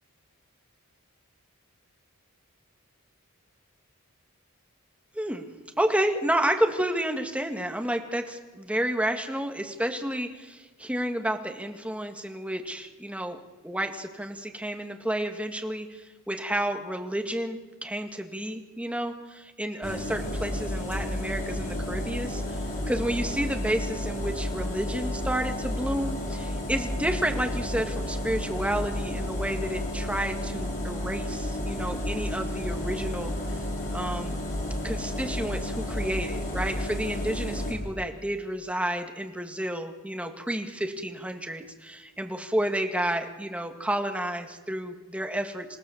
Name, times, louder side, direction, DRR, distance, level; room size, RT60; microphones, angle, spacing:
voice 1, 5.1-5.5 5.8-13.4 13.6-33.3 33.9-34.4 34.8-45.8, right 1 dB, 5° right, 5 dB, 1.8 m, -30 dB
sound 1, 19.8-37.7, left 1 dB, 35° left, 5.2 m, -31 dB
27.5 x 16.5 x 7.2 m, 1.2 s
head